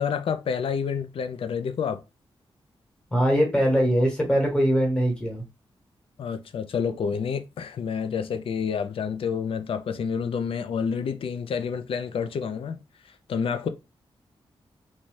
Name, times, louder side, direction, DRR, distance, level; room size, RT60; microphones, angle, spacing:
voice 1, 0.0-2.0 6.2-12.8 13.3-13.7, left 6 dB, 70° left, 0.4 m, -28 dB
voice 2, 3.1-5.4, equal, 10° left, 1.2 m, -22 dB
2.7 x 2.2 x 3.1 m
wide cardioid pair, 100°, 10 cm